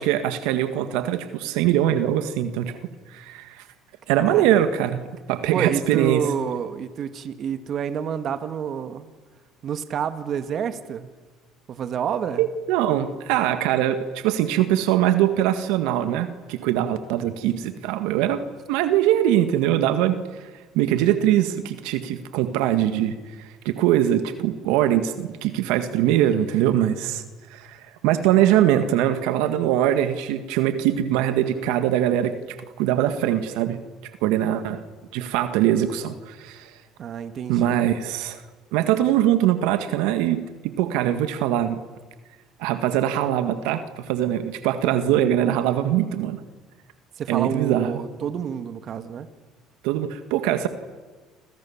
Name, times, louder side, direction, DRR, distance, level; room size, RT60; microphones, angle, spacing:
voice 1, 0.0-2.8 3.1-3.6 4.1-5.0 5.3-6.2 12.4-18.4 18.7-20.2 20.8-23.1 23.4-27.2 27.5-27.8 28.0-33.8 34.2-34.8 35.1-36.7 37.5-38.4 38.7-41.8 42.6-46.4 47.3-47.9 49.8-50.7, right 11 dB, 80° right, 10 dB, 1.9 m, -22 dB
voice 2, 4.2-4.5 5.5-9.1 9.6-11.1 11.7-12.5 37.0-37.8 47.2-49.3, right 8 dB, 50° right, 10 dB, 1.9 m, -28 dB
30.0 x 27.0 x 7.3 m, 1.3 s
supercardioid pair, 95°, 0 cm